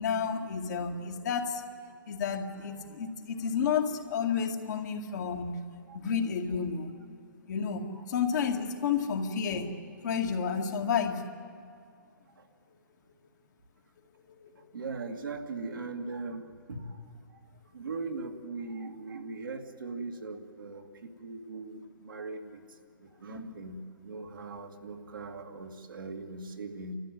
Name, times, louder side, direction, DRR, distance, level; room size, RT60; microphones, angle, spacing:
voice 1, 0.0-1.6 2.1-5.6 5.9-6.9 7.5-9.7 10.0-11.2 14.4-14.5 23.3-23.5, left 6 dB, 55° left, 2 dB, 2.1 m, -31 dB
voice 2, 2.6-2.9 4.7-4.9 5.9-6.0 7.9-8.0 12.4-12.5 14.7-17.0 17.3-17.4 17.7-22.6 23.0-26.9, right 3 dB, 80° right, 3 dB, 2.3 m, -40 dB
29.5 x 14.0 x 9.2 m, 2.3 s
hypercardioid pair, 130°, 11 cm